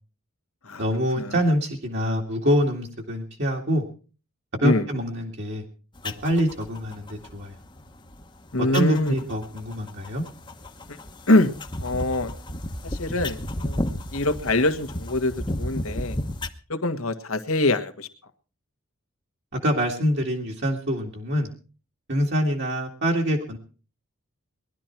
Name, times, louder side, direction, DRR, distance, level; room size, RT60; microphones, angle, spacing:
voice 1, 0.8-3.8 4.6-5.6 6.0-7.5 8.7-10.2 19.6-21.5 22.1-23.6, equal, 55° right, -1 dB, 2.3 m, -25 dB
sound 1, 5.9-16.5, left 1 dB, 20° left, 1.0 m, -34 dB
voice 2, 8.5-9.1 10.9-11.0 11.3-11.5 11.8-12.3 12.8-13.8 14.1-16.2 16.7-18.1, left 2 dB, 80° left, 8 dB, 1.7 m, -24 dB
20.5 x 12.0 x 4.5 m, 0.37 s
head